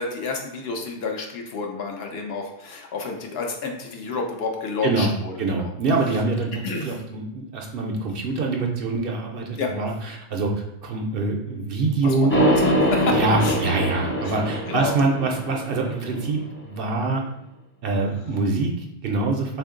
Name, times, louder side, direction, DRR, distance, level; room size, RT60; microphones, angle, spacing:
voice 1, 0.0-5.7 6.6-7.0 9.6-9.8 11.9-13.6 14.2-14.4 14.7-14.9, left 4 dB, 65° left, 2 dB, 0.8 m, -30 dB
voice 2, 5.4-10.5 10.8-12.3 13.1-17.2 17.8-19.6, right 3 dB, 60° right, 1 dB, 0.7 m, -25 dB
sound 1, 12.3-16.4, equal, 20° left, 0.3 m, -23 dB
3.5 x 2.5 x 3.7 m, 0.86 s
omnidirectional pair, 1.2 m